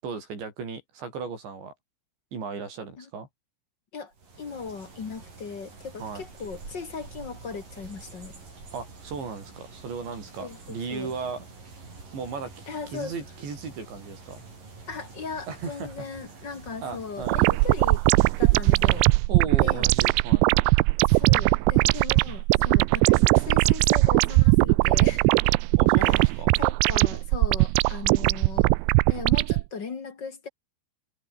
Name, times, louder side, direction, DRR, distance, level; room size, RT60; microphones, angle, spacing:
voice 1, 0.0-1.7 2.3-3.3 6.0-6.2 8.7-11.5 12.1-14.5 15.5-15.9 16.8-17.6 19.3-20.5 25.8-26.5, right 5 dB, 70° right, 9.3 m, -36 dB
sound 1, 4.1-19.2, right 3 dB, 45° right, 9.5 m, -46 dB
voice 2, 4.4-8.3 10.4-11.1 12.7-13.1 14.9-18.0 18.4-19.1 19.6-19.9 21.0-25.2 26.0-26.3 26.6-28.7 29.1-30.5, left 5 dB, 45° left, 1.4 m, -38 dB
sound 2, 17.2-29.6, right 24 dB, 90° right, 2.9 m, -20 dB
omnidirectional pair, 5.3 m